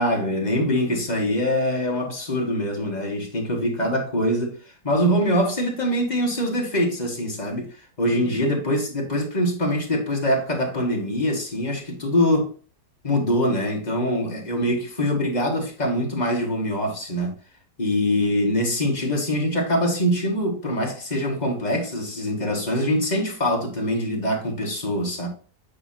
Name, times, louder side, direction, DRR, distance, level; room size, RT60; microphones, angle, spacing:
voice 1, 0.0-4.6 4.8-7.7 8.0-12.5 13.0-17.3 17.8-25.3, equal, 25° left, 1.7 m, -23 dB
8.5 x 4.6 x 2.8 m
omnidirectional pair, 1.9 m